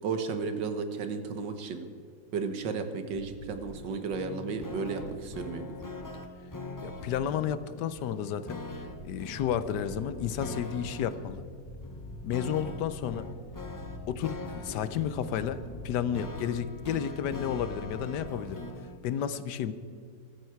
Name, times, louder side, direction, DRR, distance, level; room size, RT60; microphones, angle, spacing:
voice 1, 0.0-1.8 2.3-5.8, right 5 dB, 85° right, 8 dB, 1.8 m, -33 dB
sound 1, 3.1-3.6 5.0-5.5 6.8-7.3 8.7-18.4, left 1 dB, 55° left, 2.5 m, -45 dB
sound 2, 3.7-19.0, left 2 dB, 20° left, 0.5 m, -43 dB
voice 2, 6.8-8.6 9.0-11.5 12.2-13.3 14.1-18.7 19.0-19.7, left 9 dB, 75° left, 13 dB, 1.2 m, -32 dB
14.5 x 14.0 x 4.6 m, 2.2 s
omnidirectional pair, 1.9 m